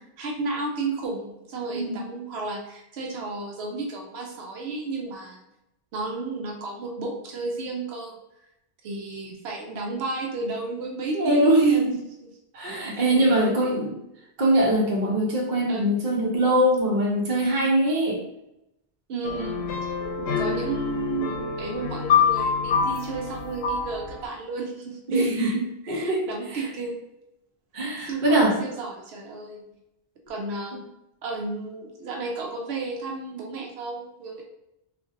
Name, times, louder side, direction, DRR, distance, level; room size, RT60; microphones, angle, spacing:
voice 1, 0.2-5.4 5.9-8.2 8.8-11.9 12.7-12.8 13.1-13.7 15.7-15.9 19.1-19.7 20.2-25.6 25.8-27.0 28.0-29.6 30.3-30.8 31.2-34.4, right 3 dB, 85° right, 1 dB, 0.9 m, -33 dB
voice 2, 11.1-11.9 12.5-13.9 14.4-18.2 25.1-26.6 27.7-28.6, right 1 dB, 50° right, -1 dB, 0.9 m, -22 dB
sound 1, 19.2-24.2, left 6 dB, 80° left, 0.8 m, -26 dB
3.8 x 2.5 x 2.5 m, 0.88 s
omnidirectional pair, 1.1 m